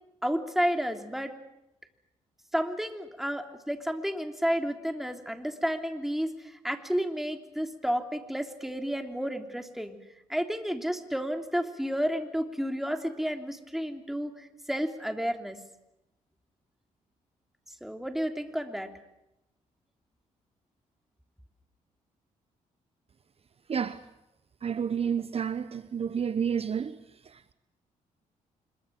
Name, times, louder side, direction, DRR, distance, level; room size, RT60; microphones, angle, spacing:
voice 1, 0.2-1.3 2.5-10.0 10.3-15.6 17.8-18.9, equal, ahead, 3.2 m, -31 dB
voice 2, 23.7-24.0 24.6-27.0 27.2-27.5, right 7 dB, 45° right, 1.0 m, -30 dB
26.0 x 22.5 x 7.6 m
cardioid pair, 75°, 14 cm